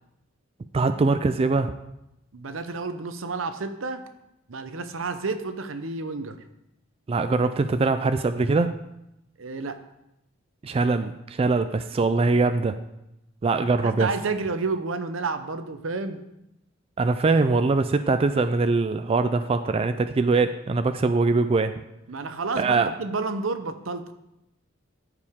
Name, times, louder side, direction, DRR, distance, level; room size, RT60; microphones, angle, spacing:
voice 1, 0.7-1.7 7.1-8.7 10.6-12.8 13.4-14.1 17.0-21.7 22.6-22.9, right 3 dB, 30° right, 9 dB, 0.3 m, -22 dB
voice 2, 2.3-4.0 4.5-6.4 9.4-9.8 13.8-16.2 22.1-24.1, right 3 dB, 80° right, 9 dB, 0.8 m, -30 dB
14.0 x 4.9 x 3.6 m, 0.87 s
head